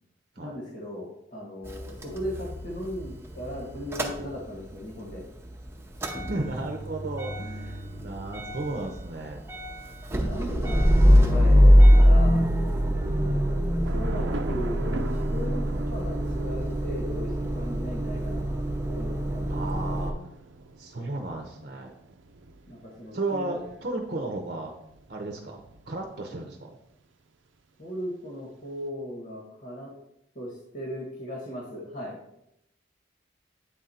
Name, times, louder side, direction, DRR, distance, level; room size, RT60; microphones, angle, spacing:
voice 1, 0.4-5.2 10.1-12.4 13.7-15.0 15.3-18.4 18.9-20.0 22.7-23.5 27.8-29.9 30.3-32.2, equal, 55° left, -4 dB, 1.6 m, -37 dB
Motor vehicle (road) / Engine starting / Idling, 1.6-4.8 5.1-20.1, equal, 15° right, 0.7 m, -23 dB
voice 2, 6.3-9.4 13.2-13.4 19.5-20.1 20.8-21.9 23.1-24.7 25.1-26.8, right 2 dB, 50° right, 3 dB, 0.7 m, -34 dB
Thunder / Rain, 13.8-26.4, right 3 dB, 90° right, 0.5 m, -42 dB
8.6 x 3.8 x 4.3 m, 0.81 s
head